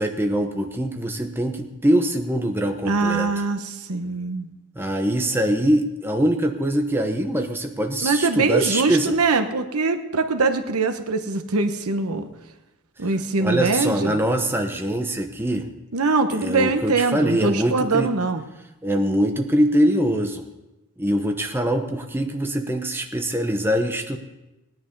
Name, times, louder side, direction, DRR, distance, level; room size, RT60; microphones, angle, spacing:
voice 1, 0.0-3.3 4.8-9.1 13.4-15.7 16.3-18.1 18.8-20.5 21.0-24.2, right 1 dB, 10° right, 4 dB, 0.9 m, -23 dB
voice 2, 2.8-4.5 8.0-12.3 13.0-14.2 15.9-18.4, right 3 dB, 80° right, 7 dB, 1.1 m, -23 dB
17.5 x 10.0 x 5.4 m, 1.0 s
head